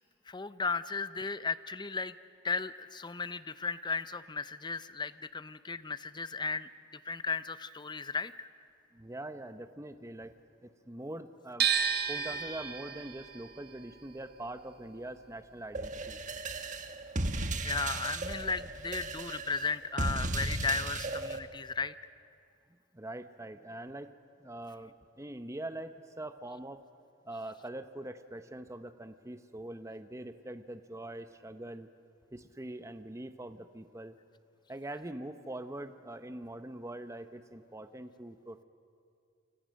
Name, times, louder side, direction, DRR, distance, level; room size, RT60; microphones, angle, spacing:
voice 1, 0.3-2.1 2.4-6.7 7.0-8.5 17.6-21.9, left 4 dB, 25° left, 14 dB, 0.6 m, -35 dB
voice 2, 8.9-10.3 10.6-11.7 12.1-16.2 22.9-24.1 24.4-26.8 27.2-31.9 32.3-34.2 34.7-38.6, right 1 dB, 15° right, 10 dB, 0.8 m, -43 dB
sound 1, 11.6-17.6 17.9-19.2, right 7 dB, 55° right, 1.7 m, -35 dB
sound 2, 15.7-21.4, right 2 dB, 40° right, 1.3 m, -35 dB
29.0 x 25.5 x 6.4 m, 2.3 s
head